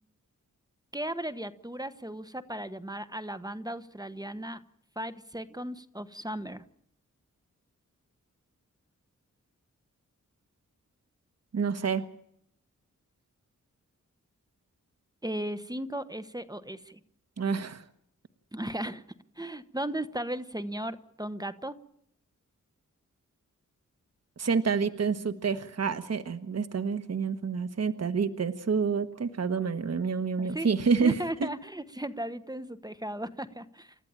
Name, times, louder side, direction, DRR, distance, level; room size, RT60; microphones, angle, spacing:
voice 1, 0.9-4.6 5.0-6.6 15.2-17.0 18.5-19.0 19.4-21.8 30.4-30.7 31.0-33.9, right 1 dB, 15° right, 12 dB, 1.1 m, -36 dB
voice 2, 11.5-12.0 17.4-17.8 24.4-31.5, right 5 dB, 55° right, 10 dB, 1.3 m, -28 dB
29.0 x 13.5 x 8.8 m, 0.71 s
wide cardioid pair, 90°, 30 cm